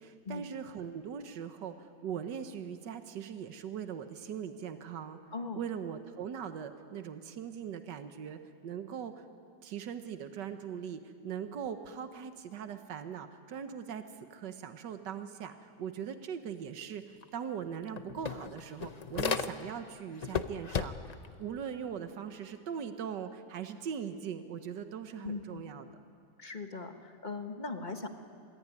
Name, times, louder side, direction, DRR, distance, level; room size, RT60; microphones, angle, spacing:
voice 1, 0.0-5.2 5.5-9.2 9.6-25.9, right 8 dB, 85° right, 8 dB, 1.8 m, -40 dB
sound 1, 17.2-17.3 17.6-19.9 20.2-21.3, left 6 dB, 55° left, 0.4 m, -35 dB
voice 2, 25.2-25.6 26.4-28.1, left 3 dB, 30° left, 6 dB, 1.5 m, -39 dB
25.5 x 21.5 x 9.7 m, 2.3 s
omnidirectional pair, 1.8 m